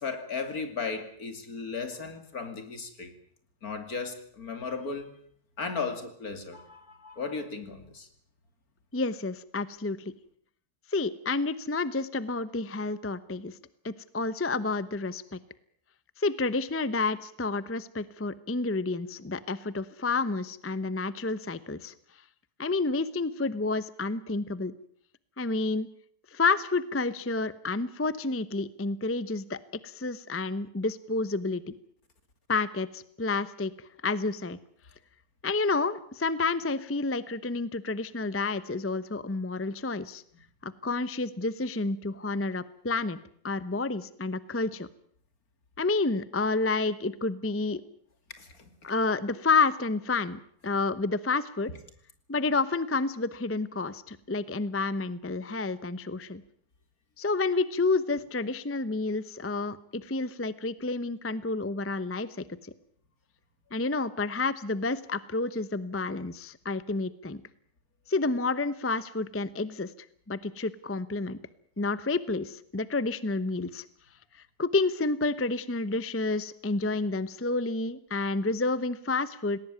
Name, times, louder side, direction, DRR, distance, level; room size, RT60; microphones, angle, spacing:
voice 1, 0.0-3.1 3.6-5.1 5.6-8.1 48.4-48.5, left 4 dB, 65° left, 8 dB, 3.1 m, -35 dB
voice 2, 8.9-10.1 10.9-13.6 13.8-15.4 16.2-21.9 22.6-24.7 25.4-25.9 26.3-31.6 32.5-33.7 34.0-34.6 35.4-40.2 40.6-43.2 43.4-44.9 45.8-47.8 48.8-51.7 52.3-56.4 57.2-62.3 63.7-67.4 68.1-69.9 70.3-71.4 71.8-73.8 74.6-79.6, left 3 dB, 15° left, 16 dB, 0.5 m, -29 dB
19.5 x 18.5 x 9.1 m, 0.63 s
omnidirectional pair, 1.7 m